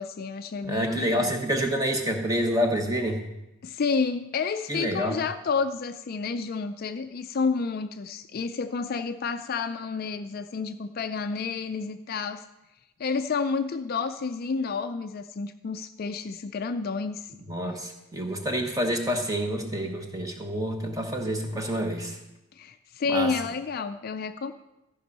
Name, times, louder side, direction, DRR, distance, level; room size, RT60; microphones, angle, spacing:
voice 1, 0.0-1.3 3.6-12.4 13.0-17.3 22.6-24.5, left 5 dB, 40° left, 9 dB, 0.3 m, -30 dB
voice 2, 0.6-3.2 4.7-5.1 17.5-22.2 23.1-23.3, equal, 15° right, 3 dB, 1.0 m, -28 dB
14.0 x 5.3 x 5.4 m, 0.95 s
head